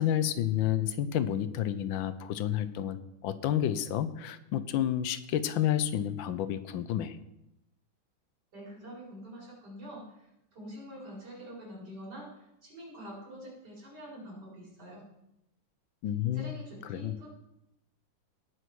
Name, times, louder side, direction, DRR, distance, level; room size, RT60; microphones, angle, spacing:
voice 1, 0.0-3.0 3.2-7.2 16.0-17.2, left 11 dB, 75° left, 13 dB, 1.4 m, -30 dB
voice 2, 8.5-10.0 10.5-12.3 12.6-15.0 16.3-17.3, equal, 50° right, -5 dB, 5.2 m, -45 dB
18.0 x 6.2 x 4.7 m, 0.86 s
omnidirectional pair, 2.2 m